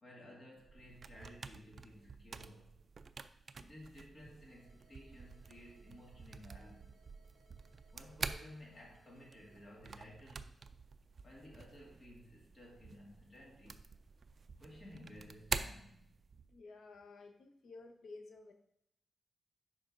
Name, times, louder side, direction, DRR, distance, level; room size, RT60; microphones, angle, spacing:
voice 1, 0.0-2.8 3.6-7.0 7.9-10.5 11.2-14.0 14.6-16.1, left 1 dB, 35° left, -2 dB, 2.0 m, -55 dB
sound 1, 0.6-16.6, right 4 dB, 45° right, 0.3 m, -48 dB
sound 2, 4.1-15.8, right 1 dB, 5° right, 1.7 m, -74 dB
sound 3, 4.5-9.6, right 2 dB, 25° right, 1.1 m, -71 dB
voice 2, 16.5-18.5, left 3 dB, 75° left, 5 dB, 0.9 m, -53 dB
11.0 x 4.4 x 2.6 m, 0.75 s
wide cardioid pair, 145°, 0 cm